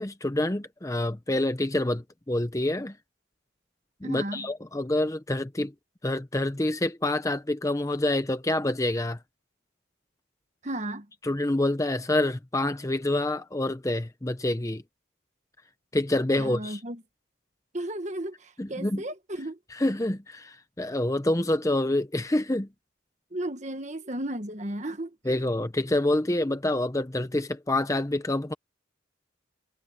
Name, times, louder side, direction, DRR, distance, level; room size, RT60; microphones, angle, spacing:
voice 1, 0.0-3.0 4.0-5.7 6.0-9.2 11.2-14.8 15.9-16.8 18.6-19.0 19.7-22.7 25.3-28.5, left 1 dB, 15° left, 0.7 m, -27 dB
voice 2, 4.0-4.5 10.6-11.1 16.4-17.0 17.7-19.6 23.3-25.2, right 1 dB, 35° right, 1.5 m, -34 dB
head